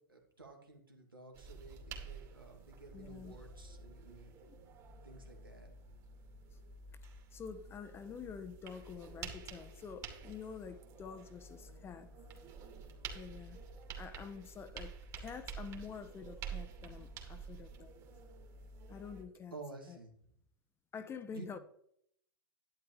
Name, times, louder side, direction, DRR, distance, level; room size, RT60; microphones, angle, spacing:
voice 1, 0.1-4.3 5.0-6.0 17.2-17.6 19.5-20.2 21.3-21.6, right 3 dB, 90° right, 2.7 m, -53 dB
sound 1, 1.3-19.2, right 5 dB, 30° right, 2.7 m, -49 dB
voice 2, 2.9-3.3 4.4-4.6 7.3-12.1 13.1-13.6 14.0-18.0 18.9-19.6 19.9-20.0 20.9-21.6, left 6 dB, 20° left, 1.1 m, -47 dB
11.5 x 11.0 x 3.3 m
figure-of-eight pair, 100°, 11 cm